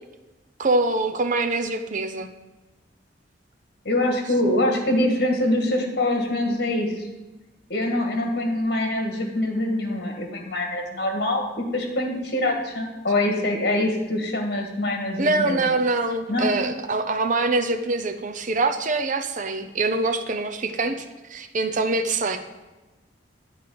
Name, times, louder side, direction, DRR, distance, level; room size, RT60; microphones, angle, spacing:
voice 1, 0.6-2.3 15.2-21.0 21.3-22.4, right 3 dB, 45° right, 6 dB, 0.6 m, -24 dB
voice 2, 3.9-7.1 7.7-15.7 16.3-16.6, left 1 dB, 65° left, 3 dB, 1.8 m, -24 dB
9.3 x 4.6 x 7.7 m, 1.1 s
head